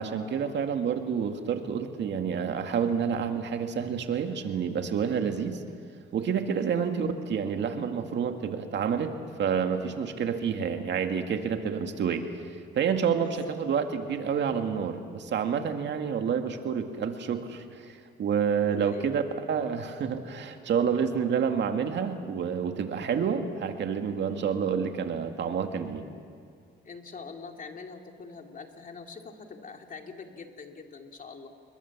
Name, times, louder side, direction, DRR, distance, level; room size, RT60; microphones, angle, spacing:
voice 1, 0.0-5.6 6.1-9.1 9.4-12.3 12.7-19.2 19.5-26.1, right 7 dB, 65° right, 5 dB, 2.1 m, -29 dB
voice 2, 13.2-13.6 18.7-19.2 24.3-24.5 26.8-31.5, left 4 dB, 40° left, 4 dB, 2.7 m, -44 dB
29.5 x 22.0 x 7.4 m, 2.1 s
cardioid pair, 90°, 20 cm